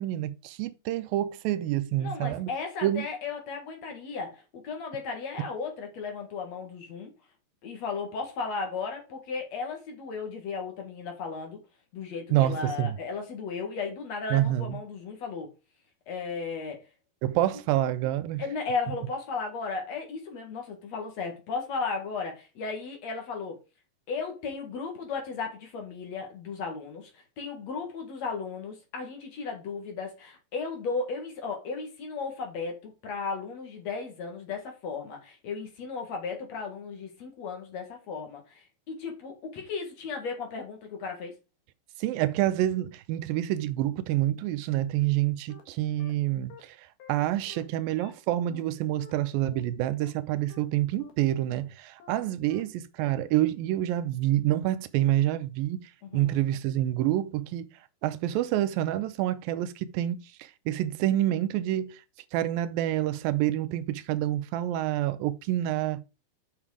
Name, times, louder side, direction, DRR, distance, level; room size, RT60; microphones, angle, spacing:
voice 1, 0.0-2.5 2.8-3.1 12.3-13.0 14.3-14.8 17.2-18.4 42.0-55.8 56.1-57.7 58.0-62.0 62.3-66.0, right 13 dB, 85° right, 2.4 m, -27 dB
voice 2, 2.0-7.1 7.6-11.6 11.9-15.5 16.1-16.8 18.4-23.6 24.1-41.3 56.1-56.4, left 4 dB, 55° left, 2.7 m, -35 dB
sound 1, 45.1-45.2 45.5-45.6 46.0-46.1 46.5-46.6 47.0-47.1 47.5-47.6 48.0-48.1 48.5-48.6 49.0-49.1 49.5-49.6 50.0-50.1 50.5-50.6 51.0-51.1 51.5-51.6 52.0-52.1 52.5-52.6 53.0-53.1, left 9 dB, 85° left, 3.6 m, -49 dB
7.3 x 6.0 x 4.8 m
omnidirectional pair, 4.1 m